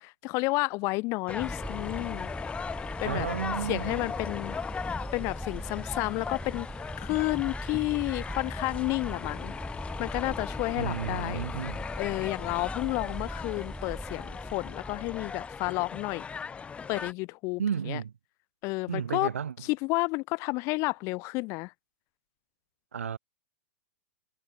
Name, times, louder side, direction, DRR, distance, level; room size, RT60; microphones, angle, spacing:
voice 1, 0.0-2.3 3.0-3.3 3.7-4.6 5.1-6.7 7.0-9.5 10.0-11.4 12.0-16.2 16.9-17.6 17.9-18.0 18.6-19.3 19.6-21.7, left 25 dB, 40° left, 1.4 m, -31 dB
sound 1, 1.3-17.1, left 6 dB, 15° left, 4.3 m, -38 dB
sound 2, 1.4-15.7, right 1 dB, 5° right, 0.8 m, -40 dB
voice 2, 3.0-4.1 10.7-11.8 17.6-18.1 18.9-19.5 22.9-23.2, right 7 dB, 85° right, 4.6 m, -33 dB
hypercardioid pair, 120°, 7 cm